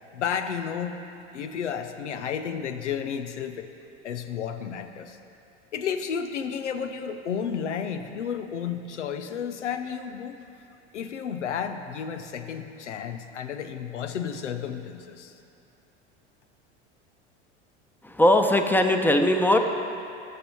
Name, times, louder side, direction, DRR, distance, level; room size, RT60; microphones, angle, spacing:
voice 1, 0.1-1.0 1.3-3.7 4.0-5.2 5.7-10.4 10.9-15.4, left 7 dB, 90° left, 8 dB, 0.8 m, -32 dB
voice 2, 18.0-19.6, left 1 dB, 5° left, 5 dB, 0.9 m, -20 dB
18.5 x 6.6 x 4.5 m, 2.7 s
hypercardioid pair, 85°, 35 cm